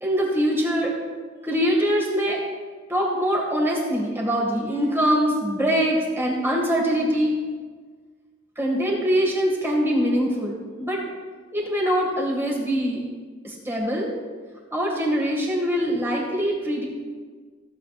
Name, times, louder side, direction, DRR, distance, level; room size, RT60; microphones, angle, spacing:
voice 1, 0.0-1.0 1.4-2.4 2.9-7.4 8.6-11.0 11.5-13.0 13.4-14.1 14.7-16.9, equal, 15° right, -3 dB, 1.9 m, -23 dB
15.5 x 7.8 x 2.5 m, 1.5 s
head